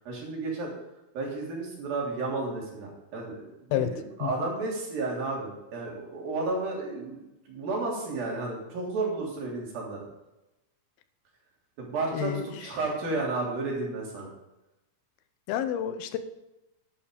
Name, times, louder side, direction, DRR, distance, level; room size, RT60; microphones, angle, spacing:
voice 1, 0.1-0.7 1.1-3.4 3.7-10.0 11.8-14.3, right 3 dB, 70° right, -2 dB, 5.0 m, -32 dB
voice 2, 15.5-16.2, left 11 dB, 85° left, 11 dB, 2.8 m, -28 dB
12.0 x 10.0 x 5.1 m, 0.96 s
omnidirectional pair, 4.3 m